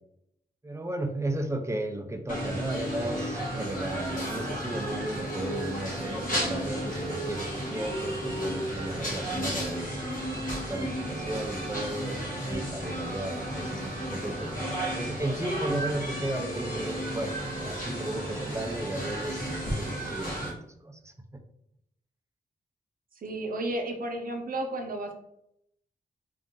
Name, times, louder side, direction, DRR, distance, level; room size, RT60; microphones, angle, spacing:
voice 1, 0.6-10.1 10.5-21.4, right 1 dB, 15° right, 5 dB, 0.5 m, -35 dB
sound 1, 2.3-20.5, right 1 dB, 55° left, 1.5 m, -33 dB
voice 2, 23.2-25.1, right 1 dB, 60° right, 3 dB, 0.7 m, -32 dB
3.8 x 2.5 x 3.6 m, 0.75 s
wide cardioid pair, 120°, 17 cm